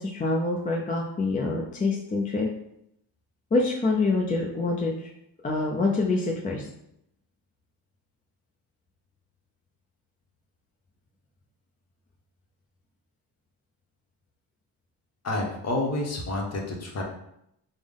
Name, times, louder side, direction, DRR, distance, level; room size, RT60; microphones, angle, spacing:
voice 1, 0.0-2.5 3.5-5.1 5.4-6.7, left 3 dB, 20° left, -1 dB, 0.3 m, -26 dB
voice 2, 15.2-17.0, left 2 dB, 35° left, 1 dB, 0.8 m, -29 dB
3.4 x 2.1 x 3.5 m, 0.76 s
cardioid pair, 95°, 42 cm